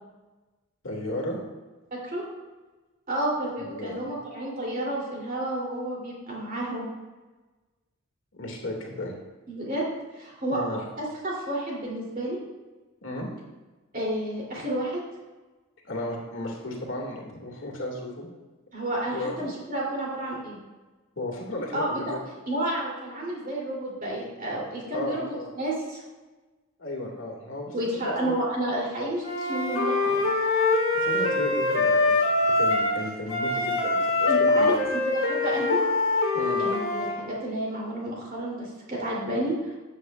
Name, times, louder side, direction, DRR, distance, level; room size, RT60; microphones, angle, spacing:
voice 1, 0.8-1.4 3.6-3.9 8.3-9.1 10.5-10.8 13.0-13.3 15.8-18.3 19.1-19.5 21.2-22.2 24.9-25.5 26.8-27.7 28.0-28.3 30.9-34.8 36.3-36.6, left 1 dB, 60° left, -1 dB, 1.9 m, -34 dB
voice 2, 3.1-6.8 9.5-9.9 10.1-10.6 11.0-12.4 13.9-15.0 18.7-20.6 21.7-22.0 22.5-26.0 27.7-30.2 34.3-35.8 36.6-39.7, right 1 dB, 40° right, -4 dB, 2.8 m, -30 dB
Wind instrument woodwind instrument, 29.2-33.0 33.3-37.1, left 2 dB, 75° left, 1.8 m, -24 dB
13.0 x 8.3 x 2.3 m, 1.2 s
head